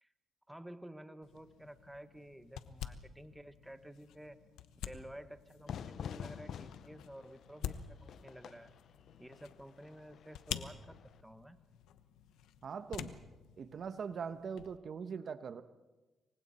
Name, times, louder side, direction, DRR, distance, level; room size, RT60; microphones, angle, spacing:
voice 1, 0.5-4.4 4.8-8.7 9.2-11.6, right 1 dB, 5° right, 10 dB, 1.3 m, -52 dB
sound 1, 1.2-14.8, left 10 dB, 85° left, 1.1 m, -48 dB
Fire / Fireworks, 5.7-11.2, left 8 dB, 65° left, 0.8 m, -48 dB
voice 2, 12.6-13.3 13.6-15.6, right 6 dB, 50° right, 11 dB, 1.0 m, -42 dB
28.5 x 24.0 x 4.3 m, 1.1 s
cardioid pair, 90°, 0 cm